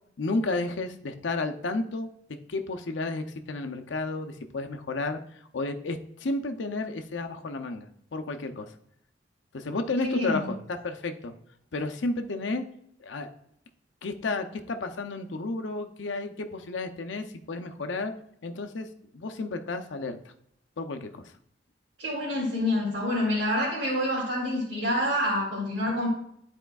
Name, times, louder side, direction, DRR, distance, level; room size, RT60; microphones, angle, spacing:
voice 1, 0.2-2.1 2.5-5.2 5.5-8.7 9.5-11.3 11.7-12.6 13.0-13.3 14.0-18.1 18.4-18.9 19.1-20.3 20.8-21.3, left 2 dB, 75° left, 6 dB, 0.6 m, -32 dB
voice 2, 10.0-10.5 22.0-26.1, left 1 dB, 85° right, -6 dB, 2.6 m, -27 dB
11.5 x 4.4 x 2.3 m, 0.71 s
head